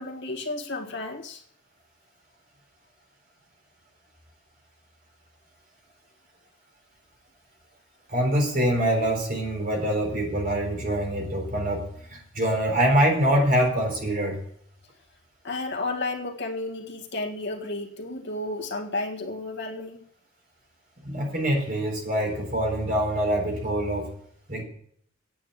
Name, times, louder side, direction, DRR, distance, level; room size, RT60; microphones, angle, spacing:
voice 1, 0.0-1.4 15.4-20.0, left 2 dB, 60° left, 2 dB, 1.7 m, -32 dB
voice 2, 8.1-14.4 21.0-24.1 24.5-24.6, right 1 dB, 45° right, 1 dB, 3.9 m, -24 dB
9.1 x 8.8 x 8.1 m, 0.64 s
head